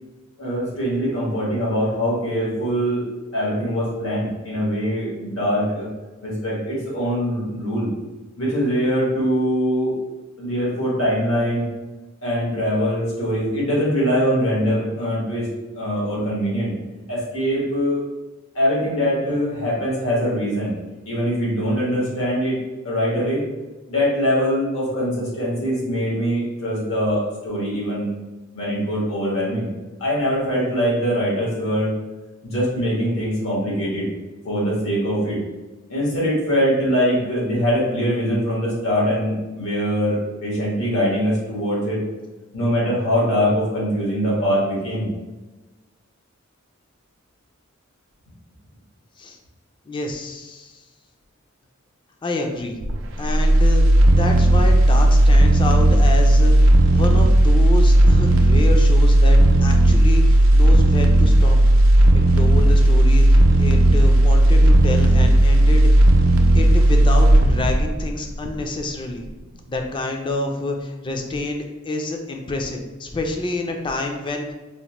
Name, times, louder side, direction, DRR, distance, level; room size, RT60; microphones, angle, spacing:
voice 1, 0.4-3.1 3.3-5.9 6.2-7.9 8.4-10.0 10.4-11.7 12.2-15.5 15.7-16.7 17.1-18.0 18.5-20.7 21.0-23.5 23.9-28.1 28.5-29.7 30.0-32.0 32.4-34.1 34.4-35.4 35.9-42.0 42.5-45.1, equal, 85° left, -6 dB, 1.3 m, -22 dB
voice 2, 49.9-50.8 52.2-52.8 53.2-53.8 54.1-61.6 62.4-66.1 66.5-69.2 69.7-74.5, left 2 dB, 25° left, 2 dB, 0.3 m, -28 dB
sound 1, 52.8-68.9 69.2-69.3, right 1 dB, 70° right, 0.4 m, -14 dB
4.1 x 2.1 x 2.9 m, 1.2 s
head